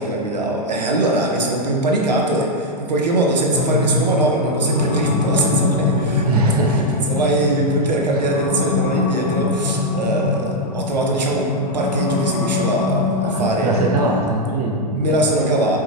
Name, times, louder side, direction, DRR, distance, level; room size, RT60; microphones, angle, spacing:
voice 1, 0.0-13.9 15.0-15.8, right 1 dB, 80° right, -1 dB, 1.2 m, -21 dB
sound 1, 3.5-14.3, left 3 dB, 55° left, 0.9 m, -23 dB
voice 2, 6.2-7.3 8.1-8.2 13.2-15.3, right 2 dB, 60° right, 0 dB, 0.9 m, -22 dB
7.4 x 4.9 x 3.0 m, 2.5 s
hypercardioid pair, 110°, 21 cm